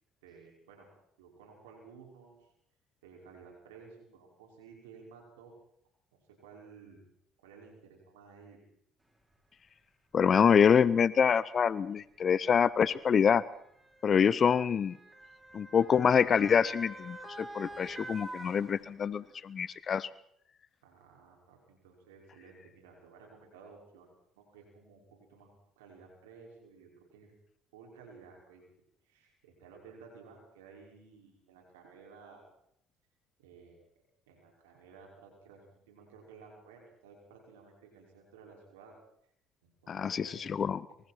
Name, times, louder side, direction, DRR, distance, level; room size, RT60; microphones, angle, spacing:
voice 1, 0.2-0.9 1.2-2.5 3.0-5.5 6.1-7.0 7.4-8.6 20.8-24.1 24.4-27.3 27.7-28.6 29.0-32.4 33.4-33.8 34.3-39.0 39.6-40.5, right 5 dB, 85° right, 0 dB, 5.8 m, -55 dB
Motor vehicle (road) / Siren, 9.3-9.4 10.4-10.6 11.7-19.3 19.7-19.8, right 1 dB, 10° right, 6.3 m, -48 dB
voice 2, 10.1-13.4 14.0-15.0 15.5-20.1 39.9-40.8, left 7 dB, 45° left, 19 dB, 0.8 m, -26 dB
25.0 x 24.0 x 4.5 m, 0.71 s
hypercardioid pair, 65°, 0 cm